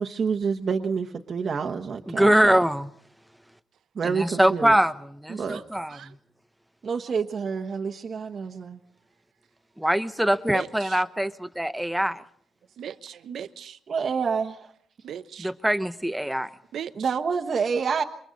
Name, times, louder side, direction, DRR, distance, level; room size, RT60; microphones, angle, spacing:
voice 1, 0.0-2.6 3.9-4.8 5.3-5.6 6.8-8.8 13.9-14.7 16.9-18.0, right 5 dB, 45° right, 1.2 m, -28 dB
voice 2, 2.1-2.9 4.0-6.1 9.8-12.2 15.4-16.5, right 1 dB, 5° right, 0.9 m, -23 dB
voice 3, 10.5-11.0 12.8-13.8 15.0-15.5 16.7-17.2, right 8 dB, 70° right, 0.9 m, -38 dB
27.5 x 24.0 x 4.1 m
wide cardioid pair, 150°, 0 cm